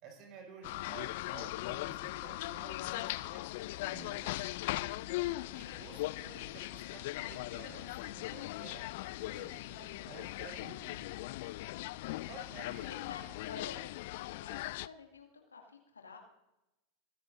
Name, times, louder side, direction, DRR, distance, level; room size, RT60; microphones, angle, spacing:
voice 1, 0.0-3.4 3.7-4.3 5.5-8.9 9.2-11.1 12.3-12.9, right 5 dB, 45° right, 2 dB, 5.4 m, -53 dB
sound 1, 0.6-14.9, left 18 dB, 60° left, 0.3 m, -39 dB
voice 2, 5.6-6.1 12.6-13.8 14.2-16.2, left 5 dB, 85° left, 2 dB, 2.3 m, -51 dB
24.0 x 10.5 x 2.7 m, 0.93 s
figure-of-eight pair, 85°, 0 cm